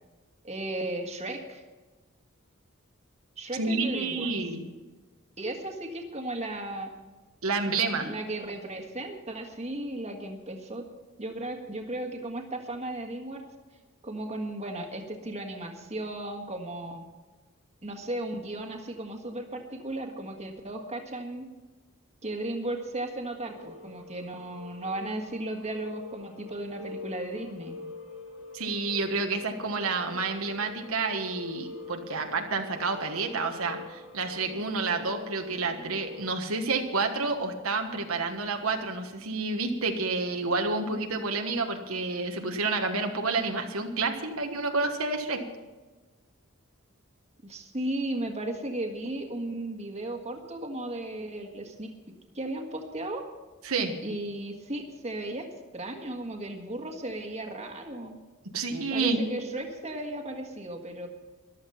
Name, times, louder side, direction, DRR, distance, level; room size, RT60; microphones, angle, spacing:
voice 1, 0.4-1.6 3.4-4.3 5.4-6.9 8.0-10.8 11.2-13.4 14.0-17.0 17.8-21.5 22.2-27.7 47.4-51.9 52.3-53.2 54.0-55.5 55.7-58.2 58.9-61.1, right 1 dB, 30° right, 3 dB, 1.6 m, -35 dB
voice 2, 3.6-4.7 7.4-8.1 28.5-45.4 53.6-54.0 58.5-59.2, right 3 dB, 80° right, 4 dB, 1.3 m, -29 dB
sound 1, 23.4-36.2, left 3 dB, 85° left, 3.8 m, -45 dB
14.5 x 12.0 x 5.6 m, 1.2 s
head